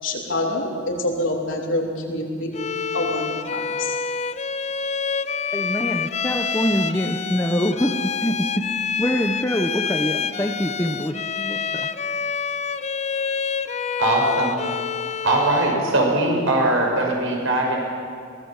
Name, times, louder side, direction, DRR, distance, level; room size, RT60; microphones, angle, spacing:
voice 1, 0.0-2.5 2.9-4.0, left 1 dB, 75° left, 0 dB, 3.6 m, -26 dB
Bowed string instrument, 2.5-15.9, left 6 dB, 30° left, 0.5 m, -27 dB
voice 2, 5.5-8.7 9.0-11.9, equal, 10° left, 3 dB, 0.9 m, -24 dB
voice 3, 14.0-14.6 15.2-17.8, right 2 dB, 85° right, 0 dB, 6.0 m, -20 dB
23.0 x 18.0 x 7.4 m, 2.2 s
head